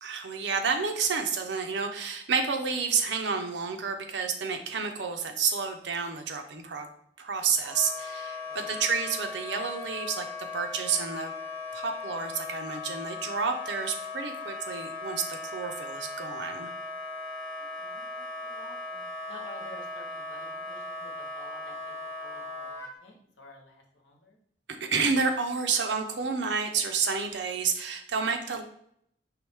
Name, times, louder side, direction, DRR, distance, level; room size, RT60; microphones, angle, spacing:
voice 1, 0.0-6.9 7.2-11.3 11.7-16.7 24.7-28.6, right 5 dB, 75° right, 6 dB, 0.6 m, -30 dB
Wind instrument woodwind instrument, 7.6-22.9, left 3 dB, 15° left, 0.9 m, -38 dB
voice 2, 8.4-8.9 17.6-24.4, left 1 dB, 80° left, 1 dB, 1.1 m, -51 dB
4.7 x 3.1 x 3.5 m, 0.71 s
head